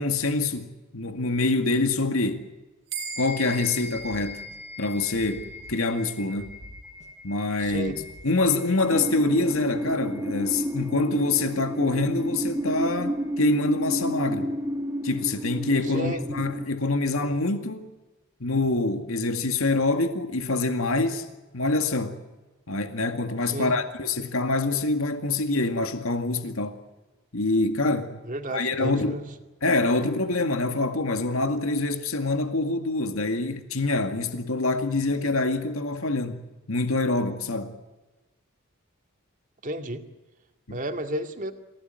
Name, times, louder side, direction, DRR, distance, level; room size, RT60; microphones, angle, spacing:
voice 1, 0.0-2.5 3.2-4.4 4.8-6.5 7.2-7.9 8.2-14.5 15.0-17.9 18.4-21.3 21.5-22.2 22.7-26.8 27.3-28.2 28.5-29.2 29.6-36.4 36.7-37.7 40.7-40.8, left 2 dB, 90° left, 2.1 m, -25 dB
sound 1, 2.9-12.6, equal, 70° right, 2.9 m, -42 dB
sound 2, 3.9-4.8 5.1-6.1 6.4-7.3 7.6-8.6, equal, 35° left, 7.5 m, -48 dB
voice 2, 7.6-8.0 15.9-16.2 23.5-23.8 28.3-29.3 39.6-40.0 40.7-41.5, right 1 dB, 40° right, 2.2 m, -32 dB
sound 3, 8.9-16.6, equal, 15° right, 1.5 m, -30 dB
27.5 x 17.0 x 9.5 m
head